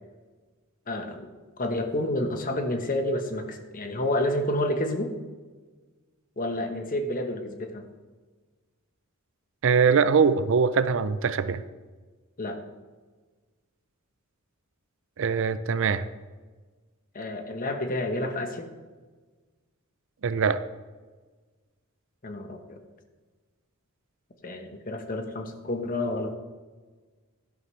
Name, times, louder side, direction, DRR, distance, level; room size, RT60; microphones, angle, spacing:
voice 1, 0.9-1.3 1.6-5.1 6.4-7.8 12.4-12.6 17.1-18.7 22.2-22.8 24.4-26.3, left 1 dB, 40° left, 5 dB, 1.2 m, -29 dB
voice 2, 9.6-11.6 15.2-16.1 20.2-20.6, right 5 dB, 60° right, 14 dB, 0.5 m, -22 dB
11.5 x 11.0 x 3.3 m, 1.4 s
head